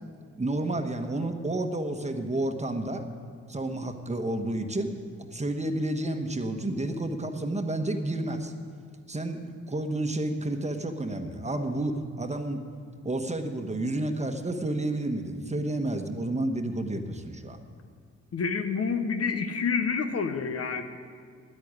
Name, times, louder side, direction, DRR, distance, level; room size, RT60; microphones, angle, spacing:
voice 1, 0.4-3.0 3.5-4.9 5.3-8.5 9.1-12.6 13.0-17.6, right 1 dB, 20° right, 6 dB, 1.3 m, -30 dB
voice 2, 18.3-20.8, left 5 dB, 50° left, 8 dB, 1.0 m, -28 dB
9.7 x 8.6 x 9.6 m, 2.1 s
supercardioid pair, 60°, 31 cm